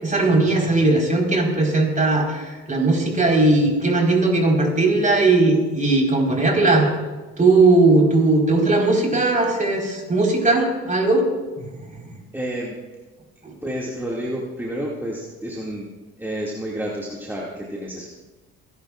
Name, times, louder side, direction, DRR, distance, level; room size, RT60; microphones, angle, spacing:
voice 1, 0.0-6.9 7.4-11.2 11.6-11.7, right 2 dB, 25° right, 0 dB, 4.4 m, -18 dB
voice 2, 12.3-12.8 13.6-15.8 16.2-18.1, equal, 5° right, -5 dB, 2.2 m, -29 dB
30.0 x 11.0 x 2.5 m, 1.2 s
supercardioid pair, 80°, 30 cm